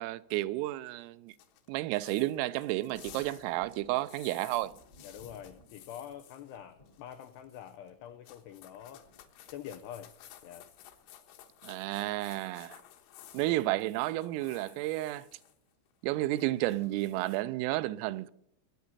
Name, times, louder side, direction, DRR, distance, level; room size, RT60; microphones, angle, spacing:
voice 1, 0.0-1.3 1.7-4.7 11.6-12.8 13.3-15.3 16.0-18.3, right 17 dB, 85° right, 3.3 m, -32 dB
sound 1, 1.3-6.6 6.9-7.9 8.2-15.6 15.9-17.4, left 11 dB, 75° left, 3.5 m, -55 dB
Thunder, 2.9-9.9 11.0-11.1 12.5-12.8 13.1-13.2 15.2-15.4 16.1-16.5, left 1 dB, 60° left, 1.0 m, -61 dB
voice 2, 5.0-9.1 9.5-10.1 10.4-10.7, left 10 dB, 90° left, 2.3 m, -46 dB
22.0 x 9.6 x 4.1 m
omnidirectional pair, 5.8 m